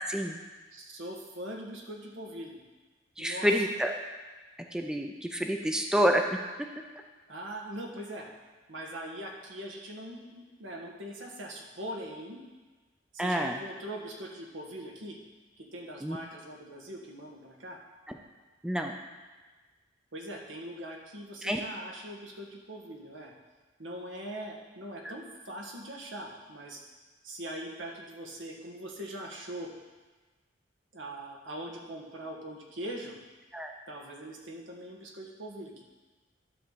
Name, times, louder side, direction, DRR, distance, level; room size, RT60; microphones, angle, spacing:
voice 1, 0.1-0.4 3.2-3.9 4.7-6.2 13.2-13.6 16.0-16.2 18.1-18.2 18.6-19.0 21.4-21.6 25.0-25.1 33.5-33.7, equal, 5° right, 3 dB, 0.5 m, -28 dB
voice 2, 0.7-2.6 3.2-3.5 7.3-8.3 8.7-12.4 13.1-15.2 15.6-17.8 20.1-23.3 23.8-26.8 27.2-29.7 30.9-33.2 33.9-35.8, right 1 dB, 85° right, 0 dB, 1.5 m, -41 dB
11.5 x 4.1 x 6.7 m, 1.3 s
head